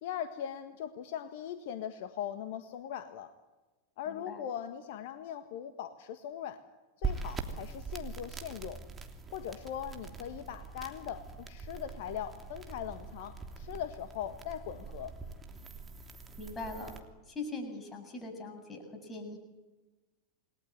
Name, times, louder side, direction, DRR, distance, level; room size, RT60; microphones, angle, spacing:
voice 1, 0.0-3.3 4.0-6.6 7.0-8.8 9.3-15.2, left 9 dB, 50° left, 9 dB, 1.6 m, -40 dB
voice 2, 4.1-4.4 16.4-17.0 17.3-19.4, left 3 dB, 15° left, 4 dB, 7.1 m, -41 dB
sound 1, 7.0-17.0, right 5 dB, 15° right, 3.1 m, -42 dB
29.0 x 20.5 x 10.0 m, 1.2 s
figure-of-eight pair, 90°, 0 cm